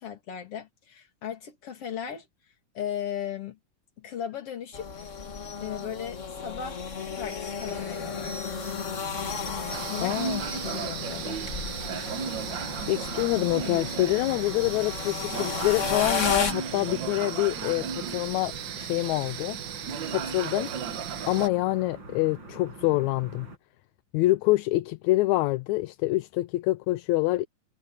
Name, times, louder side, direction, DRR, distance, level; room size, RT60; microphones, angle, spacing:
voice 1, 0.0-2.3 2.7-3.6 4.0-5.1 5.6-6.8 7.1-8.6 9.9-11.4 18.8-18.9, left 8 dB, 50° left, 3.3 m, -37 dB
sound 1, 4.7-16.5, left 5 dB, 30° left, 1.4 m, -34 dB
sound 2, 7.6-23.6, right 2 dB, 35° right, 5.9 m, -45 dB
sound 3, 9.7-21.5, right 8 dB, 80° right, 1.0 m, -35 dB
voice 2, 10.0-10.4 12.9-19.6 20.1-20.7 21.3-23.5 24.1-27.5, left 18 dB, 80° left, 1.9 m, -26 dB
omnidirectional pair, 3.6 m